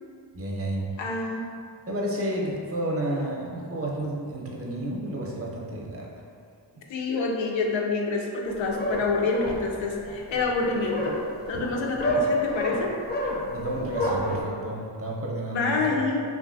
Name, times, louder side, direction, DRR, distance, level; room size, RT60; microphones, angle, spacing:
voice 1, 0.3-0.8 1.9-6.2 13.5-16.0, right 1 dB, 30° right, -3 dB, 0.6 m, -31 dB
voice 2, 1.0-1.5 6.9-11.2 11.5-12.9 15.5-16.2, left 3 dB, 85° left, 0 dB, 0.5 m, -27 dB
sound 1, 8.4-14.4, equal, 25° left, 0.5 m, -29 dB
3.0 x 2.4 x 2.5 m, 2.3 s
cardioid pair, 65°, 44 cm